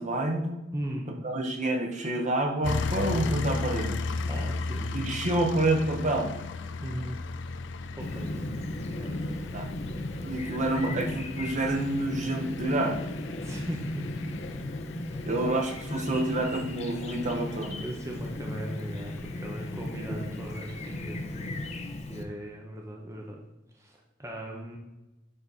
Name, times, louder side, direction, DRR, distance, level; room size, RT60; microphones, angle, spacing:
voice 1, 0.0-0.5 1.2-4.0 4.9-6.4 9.5-9.7 10.2-13.0 15.2-17.8 20.1-20.3, right 1 dB, 40° right, 3 dB, 1.3 m, -28 dB
voice 2, 0.7-1.1 4.3-5.3 6.8-7.2 8.0-8.4 9.0-9.4 13.4-14.3 16.0-16.2 17.8-23.4 23.8-24.8, equal, 15° right, -1 dB, 1.0 m, -39 dB
sound 1, 2.6-21.8, left 4 dB, 70° left, 0.4 m, -37 dB
Chirp tweet, 8.0-22.2, left 1 dB, 35° left, 0.8 m, -36 dB
11.0 x 4.2 x 4.2 m, 1.0 s
head